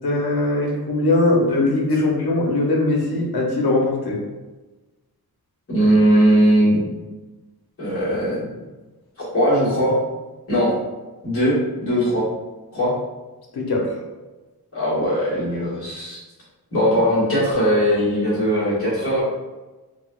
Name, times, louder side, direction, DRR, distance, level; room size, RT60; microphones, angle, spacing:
voice 1, 0.0-4.2 13.5-13.9, left 2 dB, 80° left, 0 dB, 0.7 m, -20 dB
voice 2, 5.7-6.8 7.8-8.4 9.3-10.0 10.5-10.7 11.2-12.3 12.7-12.9 14.7-16.2 16.7-19.2, equal, 35° left, -10 dB, 1.4 m, -19 dB
4.0 x 2.2 x 2.3 m, 1.2 s
wide cardioid pair, 150°, 38 cm